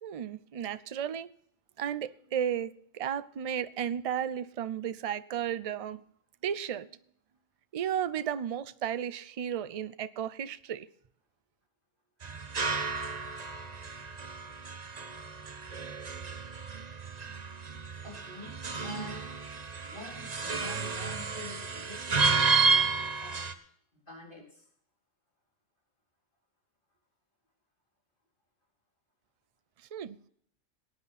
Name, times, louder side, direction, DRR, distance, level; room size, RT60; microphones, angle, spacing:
voice 1, 0.0-1.3 1.8-6.0 6.4-6.9 7.7-10.9 29.9-30.2, right 9 dB, 50° right, 15 dB, 0.4 m, -34 dB
sound 1, 12.2-23.5, right 4 dB, 35° right, 0.9 m, -31 dB
voice 2, 18.0-19.3 19.8-23.5 24.1-24.6, left 2 dB, 40° left, -3 dB, 4.1 m, -47 dB
18.0 x 9.9 x 4.1 m, 0.66 s
omnidirectional pair, 1.3 m